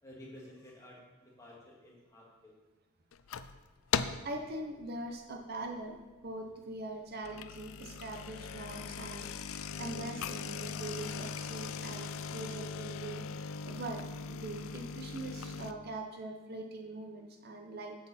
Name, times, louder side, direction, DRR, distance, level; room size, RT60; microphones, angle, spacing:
voice 1, 0.0-2.5, left 1 dB, 15° left, -5 dB, 2.1 m, -52 dB
sound 1, 3.1-3.6 3.9-4.4 4.8-5.1 5.7-5.8 6.0-6.1 7.1-15.7, left 6 dB, 85° left, 0.4 m, -39 dB
voice 2, 4.2-6.0 6.2-13.2 13.6-18.0, right 2 dB, 50° right, 3 dB, 0.7 m, -42 dB
8.0 x 7.6 x 4.3 m, 1.2 s
head